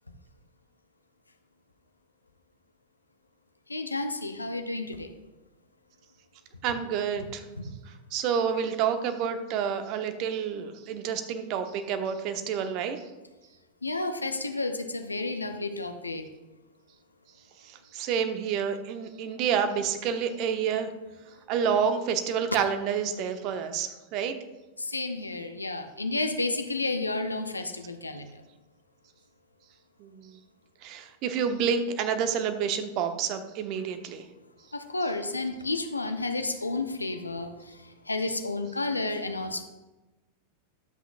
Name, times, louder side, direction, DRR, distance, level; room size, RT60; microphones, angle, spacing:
voice 1, 3.7-5.1 7.6-7.7 13.8-16.2 24.8-28.3 34.7-37.5 38.1-39.6, left 2 dB, 80° left, 7 dB, 0.7 m, -31 dB
voice 2, 6.6-7.4 8.1-13.0 17.6-20.9 21.5-24.3 30.0-30.4 30.8-34.2, right 7 dB, 40° right, 8 dB, 0.9 m, -29 dB
12.0 x 7.9 x 2.5 m, 1.1 s
figure-of-eight pair, 90°, 0 cm